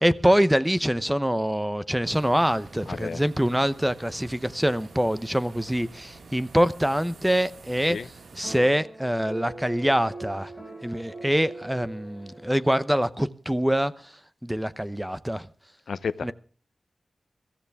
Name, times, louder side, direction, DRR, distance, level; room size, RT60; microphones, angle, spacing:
voice 1, 0.0-8.0 8.3-10.5 10.8-14.1 14.4-15.5 16.2-16.3, equal, 5° right, 0.8 m, -24 dB
sound 1, 2.1-8.6, right 4 dB, 80° right, 1.7 m, -48 dB
voice 2, 2.9-3.2 7.8-8.1 15.9-16.3, left 5 dB, 85° left, 0.6 m, -31 dB
sound 2, 8.4-12.9, right 2 dB, 25° right, 6.0 m, -42 dB
23.0 x 14.5 x 3.5 m
wide cardioid pair, 110°, 0 cm